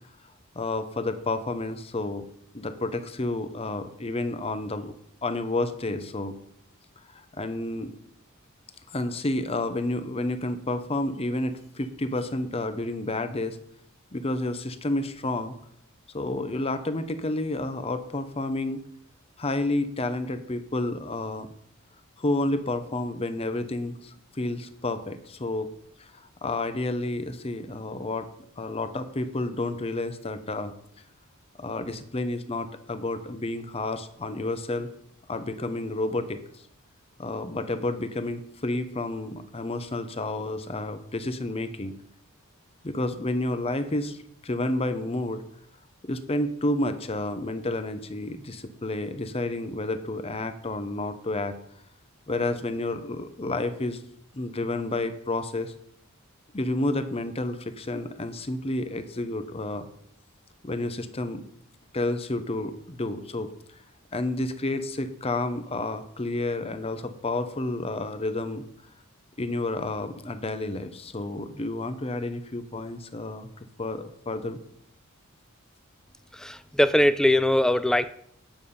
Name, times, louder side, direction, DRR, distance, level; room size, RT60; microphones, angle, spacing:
voice 1, 0.5-2.3 2.5-4.9 5.2-6.4 7.1-7.9 8.9-13.6 14.1-15.5 16.1-18.8 19.4-21.5 22.2-25.7 26.0-28.3 28.6-30.7 31.6-34.9 35.3-36.4 37.2-41.9 42.8-45.4 46.0-51.6 52.3-54.0 54.3-55.7 56.5-59.9 60.6-61.4 61.9-63.5 64.1-68.6 69.4-73.5 73.8-74.6, left 2 dB, 25° left, 10 dB, 0.7 m, -30 dB
voice 2, 76.3-78.1, left 1 dB, 5° left, 14 dB, 0.3 m, -21 dB
9.0 x 6.9 x 5.5 m, 0.69 s
head